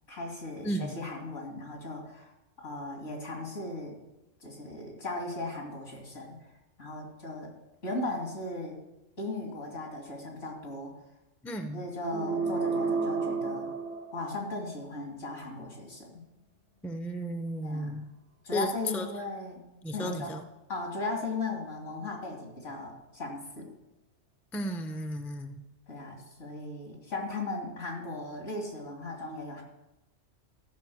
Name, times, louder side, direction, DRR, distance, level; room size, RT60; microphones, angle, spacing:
voice 1, 0.1-2.3 2.6-4.0 4.4-6.3 6.8-7.6 7.8-8.8 9.2-10.9 11.7-13.7 14.1-16.2 17.6-18.0 18.4-19.6 19.9-20.4 20.7-23.7 25.9-29.6, left 2 dB, 70° left, 0 dB, 3.1 m, -37 dB
voice 2, 11.4-11.8 16.8-18.0 18.5-19.1 19.8-20.4 24.5-25.6, equal, ahead, 6 dB, 0.5 m, -34 dB
sound 1, 12.0-14.7, right 4 dB, 70° right, 1.1 m, -31 dB
14.5 x 5.5 x 7.1 m, 0.94 s
omnidirectional pair, 1.3 m